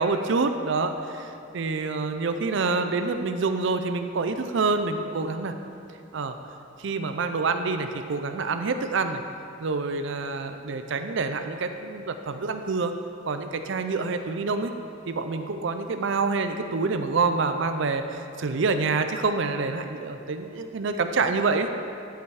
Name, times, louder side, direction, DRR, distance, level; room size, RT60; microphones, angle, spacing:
voice 1, 0.0-5.5 6.1-6.3 6.8-9.2 9.6-12.9 13.3-14.7 15.1-21.7, right 4 dB, 65° right, 8 dB, 0.5 m, -27 dB
13.0 x 5.8 x 4.8 m, 2.7 s
head